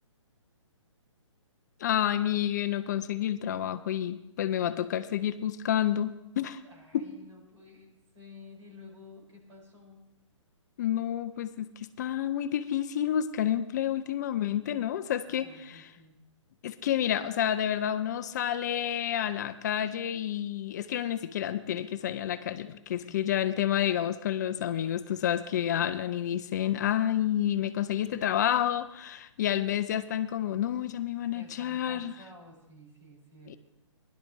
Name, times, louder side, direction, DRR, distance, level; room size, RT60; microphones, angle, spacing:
voice 1, 1.8-6.6 6.9-7.1 10.8-15.5 16.6-32.1 33.5-33.6, left 10 dB, 35° left, 10 dB, 0.4 m, -29 dB
voice 2, 6.6-10.1 15.2-16.2 23.0-23.3 31.3-33.6, left 2 dB, 65° right, -1 dB, 5.3 m, -52 dB
16.5 x 11.0 x 3.1 m, 0.88 s
hypercardioid pair, 145°, 16 cm